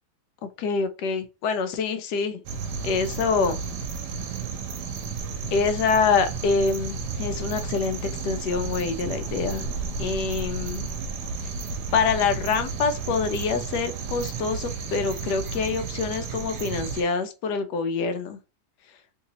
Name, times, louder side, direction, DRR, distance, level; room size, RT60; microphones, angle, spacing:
voice 1, 0.6-2.4 2.8-3.6 5.5-9.7 10.0-10.9 11.9-18.4, left 5 dB, 85° left, 1.2 m, -26 dB
sound 1, 2.5-17.0, right 5 dB, 85° right, 1.2 m, -32 dB
3.3 x 2.9 x 2.7 m
omnidirectional pair, 1.7 m